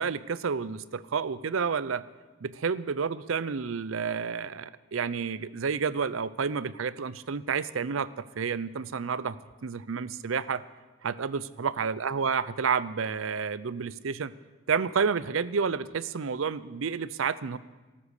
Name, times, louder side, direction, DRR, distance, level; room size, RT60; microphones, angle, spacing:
voice 1, 0.0-2.0 2.4-9.4 9.6-10.6 11.0-14.3 14.7-17.6, right 6 dB, 70° right, 17 dB, 0.5 m, -30 dB
14.0 x 13.0 x 6.6 m, 1.2 s
head